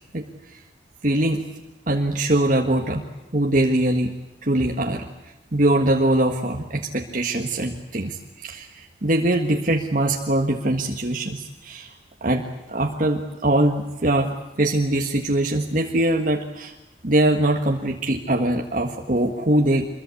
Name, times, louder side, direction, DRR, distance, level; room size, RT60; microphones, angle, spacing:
voice 1, 1.0-1.4 1.9-3.1 3.3-4.1 4.4-5.1 5.5-11.9 12.2-16.7 17.0-19.9, right 1 dB, 45° right, 2 dB, 1.7 m, -22 dB
25.5 x 22.5 x 8.5 m, 1.0 s
head